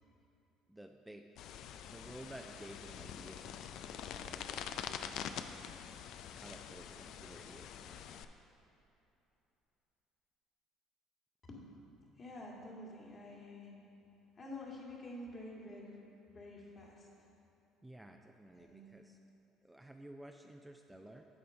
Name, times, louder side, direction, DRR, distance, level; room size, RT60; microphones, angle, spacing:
voice 1, 0.7-1.3 1.8-5.2 6.3-8.2 17.8-19.2 19.6-21.3, right 1 dB, 10° right, 3 dB, 0.4 m, -54 dB
sound 1, 1.4-8.2, left 9 dB, 65° left, 0.3 m, -45 dB
voice 2, 11.5-13.7 14.4-16.0 16.3-17.1 18.5-19.0 20.9-21.0, left 1 dB, 40° left, -3 dB, 1.8 m, -49 dB
8.6 x 4.5 x 5.3 m, 3.0 s
hypercardioid pair, 65°, 0 cm